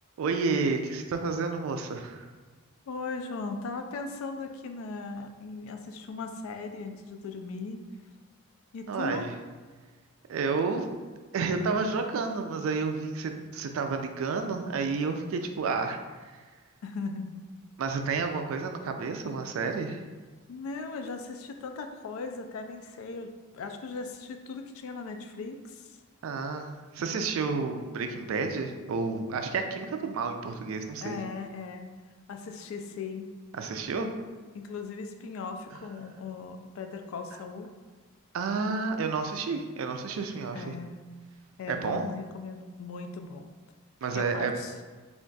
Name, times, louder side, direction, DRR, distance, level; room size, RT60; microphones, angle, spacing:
voice 1, 0.2-2.3 8.9-9.3 10.3-10.9 11.3-16.0 17.8-20.0 26.2-31.2 33.5-34.1 38.3-40.7 41.7-42.0 44.0-44.6, right 4 dB, 75° right, 6 dB, 0.3 m, -30 dB
voice 2, 2.9-7.8 8.7-9.3 16.8-17.4 20.5-26.0 27.0-27.1 31.0-31.9 32.3-33.3 34.5-37.7 40.5-41.0 41.6-43.4 44.1-44.7, left 4 dB, 75° left, 6 dB, 0.3 m, -38 dB
2.5 x 2.2 x 3.8 m, 1.4 s
head